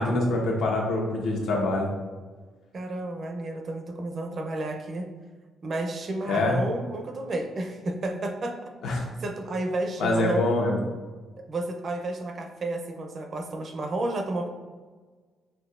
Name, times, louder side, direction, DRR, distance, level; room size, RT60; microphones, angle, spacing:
voice 1, 0.0-1.9 6.2-6.6 8.8-9.0 10.0-10.8, left 2 dB, 80° left, -1 dB, 0.8 m, -25 dB
voice 2, 2.7-5.1 5.6-10.4 11.4-14.5, right 2 dB, 40° right, 4 dB, 0.4 m, -32 dB
5.9 x 2.7 x 2.4 m, 1.4 s
cardioid pair, 150°, 0 cm